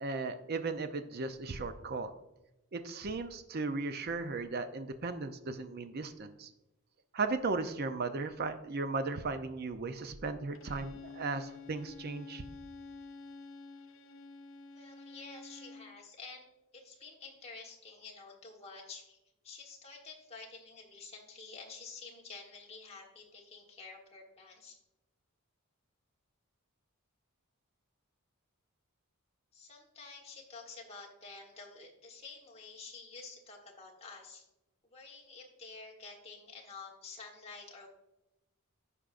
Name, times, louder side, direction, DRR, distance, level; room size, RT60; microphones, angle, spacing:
voice 1, 0.0-2.1 2.7-6.5 7.1-12.4, right 3 dB, 45° right, 9 dB, 0.5 m, -36 dB
Bowed string instrument, 10.5-16.0, left 4 dB, 60° left, 0.4 m, -49 dB
voice 2, 14.7-16.5 16.7-19.2 19.4-24.8 29.5-34.4 34.9-37.9, left 4 dB, 30° left, -1 dB, 1.3 m, -50 dB
14.5 x 5.1 x 2.5 m, 0.94 s
head